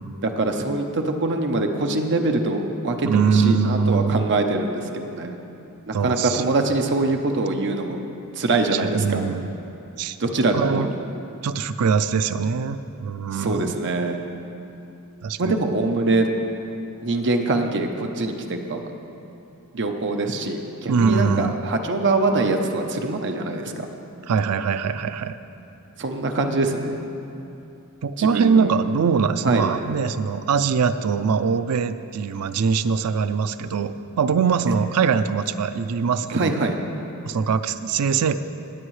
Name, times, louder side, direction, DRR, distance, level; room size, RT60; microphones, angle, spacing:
voice 1, 0.2-5.3 5.9-8.0 8.4-9.2 10.2-11.0 13.3-14.2 15.4-16.3 17.0-18.8 19.7-23.9 26.0-27.0 28.2-28.7 29.4-29.7 36.3-36.8, right 2 dB, 55° right, 4 dB, 0.8 m, -23 dB
voice 2, 3.0-4.2 5.9-6.5 8.7-9.5 10.0-10.2 10.5-10.9 11.4-13.8 15.2-15.5 20.9-21.6 24.3-25.4 28.0-36.5 37.2-38.4, right 6 dB, 85° right, 12 dB, 0.4 m, -22 dB
17.5 x 8.4 x 3.2 m, 2.8 s
head